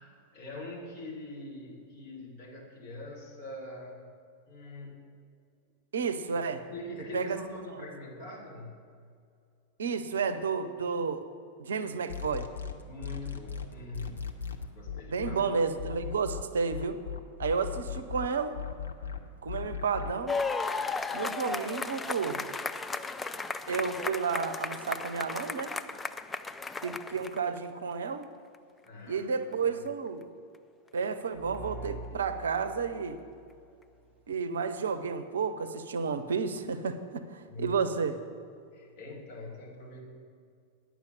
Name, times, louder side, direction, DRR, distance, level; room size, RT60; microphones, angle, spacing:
voice 1, 0.0-4.2 4.5-5.0 6.6-8.8 12.8-14.4 14.7-15.5 15.8-16.0 28.8-29.8 37.5-37.9 38.7-40.0, left 1 dB, 45° left, -1 dB, 2.4 m, -43 dB
voice 2, 5.9-6.6 7.1-7.4 9.8-11.2 11.6-12.5 15.1-17.0 17.4-18.6 19.4-20.4 21.1-22.5 23.7-25.8 26.8-28.3 29.1-30.3 30.9-33.2 34.3-38.1, right 5 dB, 65° right, 11 dB, 0.6 m, -31 dB
sound 1, 12.1-15.4 15.8-20.2, left 8 dB, 70° left, 0.7 m, -37 dB
sound 2, 20.3-27.6 28.5-28.6, left 4 dB, 10° left, 0.4 m, -35 dB
sound 3, 31.3-34.1, right 1 dB, 10° right, 0.9 m, -45 dB
9.6 x 6.0 x 8.3 m, 2.3 s
figure-of-eight pair, 90°, 0 cm